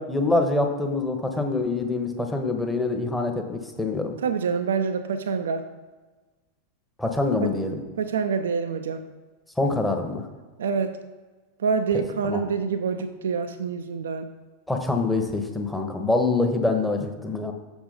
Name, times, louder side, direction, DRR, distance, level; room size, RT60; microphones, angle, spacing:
voice 1, 0.0-4.2 7.0-7.8 9.6-10.3 11.9-12.4 14.7-17.5, left 3 dB, 5° left, 4 dB, 1.0 m, -25 dB
voice 2, 4.2-5.6 7.4-7.5 8.0-9.0 10.6-10.9 11.6-14.3, right 6 dB, 65° right, 8 dB, 0.4 m, -26 dB
7.0 x 6.2 x 4.0 m, 1.3 s
figure-of-eight pair, 90°, 0 cm